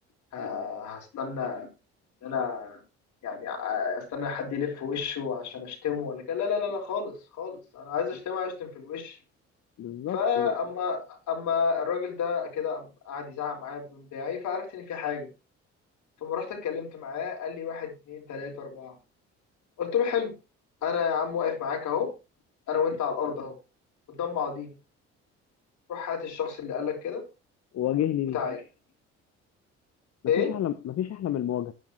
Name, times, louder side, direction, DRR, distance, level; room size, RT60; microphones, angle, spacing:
voice 1, 0.3-1.7 2.2-2.8 3.2-9.2 10.1-15.3 16.2-18.9 19.8-20.3 20.8-22.1 22.7-23.5 24.1-24.7 25.9-27.2 28.3-28.6 30.3-30.5, left 6 dB, 70° left, 4.9 m, -30 dB
voice 2, 9.8-10.5 27.7-28.4 30.4-31.7, left 11 dB, 55° left, 0.8 m, -29 dB
15.0 x 10.5 x 3.2 m
supercardioid pair, 70°, 31 cm